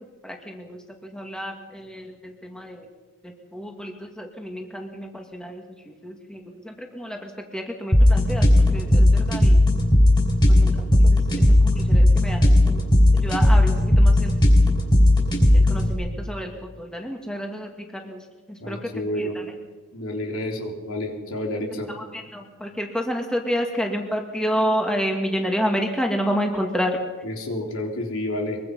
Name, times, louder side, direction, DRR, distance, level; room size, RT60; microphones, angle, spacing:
voice 1, 0.2-2.9 3.2-8.5 8.7-9.6 10.5-12.8 13.2-14.4 15.5-18.2 18.5-18.9 19.2-19.3 21.9-27.0, equal, 5° left, 2 dB, 2.1 m, -30 dB
sound 1, 7.9-15.9, left 1 dB, 20° left, 5.1 m, -16 dB
voice 2, 18.6-19.4 19.9-21.9 27.2-28.6, left 1 dB, 65° left, 1 dB, 4.1 m, -29 dB
23.5 x 23.0 x 5.6 m, 1.3 s
head